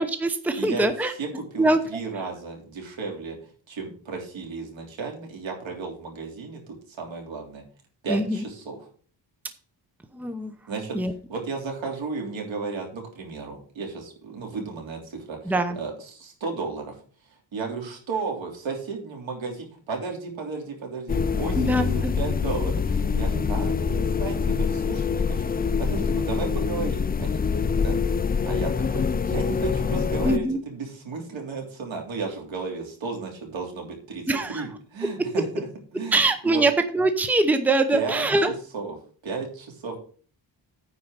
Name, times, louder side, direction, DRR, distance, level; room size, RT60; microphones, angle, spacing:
voice 1, 0.0-1.1 1.6-1.8 8.1-8.4 10.1-10.5 10.9-11.1 15.5-15.8 21.5-22.1 30.2-30.6 34.3-34.7 36.1-38.5, right 2 dB, 5° right, 8 dB, 0.8 m, -23 dB
voice 2, 0.6-0.9 1.2-3.4 3.7-7.6 8.0-8.9 10.7-11.0 11.3-17.0 17.5-28.0 28.4-34.2 34.5-36.2 36.4-36.6 37.9-38.3 38.7-39.0 39.2-40.0, right 4 dB, 80° right, 1 dB, 3.4 m, -34 dB
sound 1, 21.1-30.4, left 5 dB, 25° left, 0.3 m, -25 dB
9.6 x 4.7 x 6.7 m, 0.43 s
wide cardioid pair, 125°, 46 cm